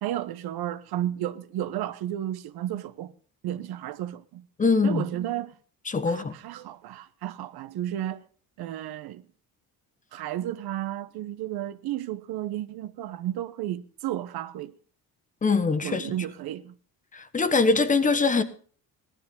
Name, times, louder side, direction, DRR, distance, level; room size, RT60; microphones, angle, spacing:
voice 1, 0.0-3.1 3.4-4.4 4.8-5.5 6.1-8.2 8.6-9.2 10.1-14.7 15.8-16.7, right 12 dB, 80° right, 1.2 m, -33 dB
voice 2, 4.6-5.0 5.9-6.3 15.4-16.1 17.1-18.4, left 4 dB, 20° left, 1.2 m, -23 dB
17.0 x 12.5 x 5.4 m
cardioid pair, 165°, 37 cm